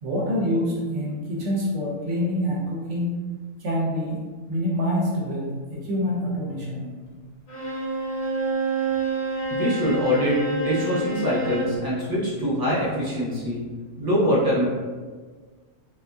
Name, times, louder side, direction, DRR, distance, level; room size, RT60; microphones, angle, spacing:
voice 1, 0.0-3.2 3.6-4.2 4.5-6.9, equal, 70° right, -3 dB, 1.1 m, -26 dB
Bowed string instrument, 7.5-11.8, right 2 dB, 45° left, 0.6 m, -28 dB
voice 2, 9.5-13.6 14.0-14.7, equal, 20° right, -7 dB, 0.7 m, -23 dB
3.5 x 2.6 x 2.3 m, 1.5 s
omnidirectional pair, 1.3 m